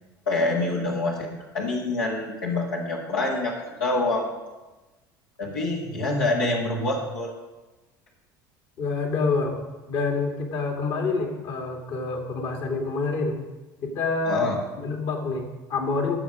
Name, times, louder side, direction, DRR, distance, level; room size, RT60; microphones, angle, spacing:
voice 1, 0.3-3.5 3.8-4.3 5.4-7.3 14.3-14.6, left 2 dB, 80° left, -3 dB, 2.0 m, -26 dB
voice 2, 8.8-9.6 9.9-13.4 13.8-14.5 14.8-16.2, left 3 dB, 55° left, 2 dB, 2.4 m, -27 dB
17.0 x 7.0 x 5.0 m, 1.1 s
hypercardioid pair, 70°, 11 cm